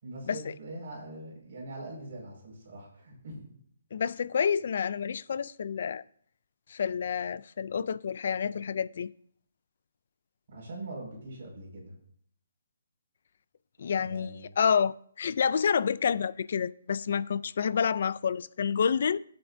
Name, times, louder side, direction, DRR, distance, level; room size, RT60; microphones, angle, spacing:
voice 1, 0.0-3.5 10.5-11.9 13.9-14.5, right 2 dB, 35° right, 5.3 m, -42 dB
voice 2, 3.9-6.0 6.7-9.1 13.8-19.2, left 7 dB, 40° left, 0.3 m, -28 dB
17.5 x 7.7 x 2.7 m
hypercardioid pair, 175°, 0 cm